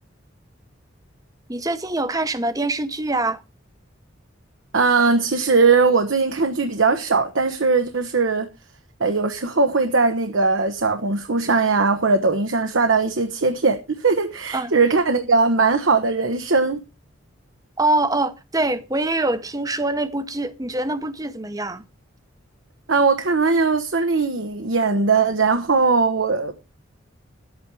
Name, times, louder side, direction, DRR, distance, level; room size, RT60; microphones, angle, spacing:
voice 1, 1.5-3.4 14.5-14.7 17.8-21.8, right 2 dB, 15° right, 0.8 m, -24 dB
voice 2, 4.7-8.5 9.0-16.8 22.9-26.5, right 4 dB, 75° right, 1.0 m, -19 dB
11.5 x 8.7 x 4.7 m
head